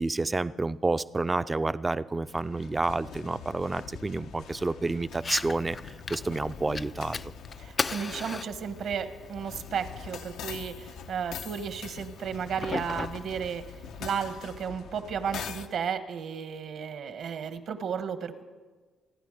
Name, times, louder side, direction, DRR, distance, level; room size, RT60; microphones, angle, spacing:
voice 1, 0.0-7.2, right 3 dB, 20° right, 14 dB, 0.5 m, -29 dB
sound 1, 2.2-15.7, left 7 dB, 85° left, 1.0 m, -44 dB
Fire, 5.1-14.1, left 4 dB, 35° left, 0.4 m, -39 dB
voice 2, 7.6-13.6 14.0-18.4, right 7 dB, 65° right, 10 dB, 1.3 m, -33 dB
27.5 x 10.5 x 5.0 m, 1.4 s
cardioid pair, 90°, 0 cm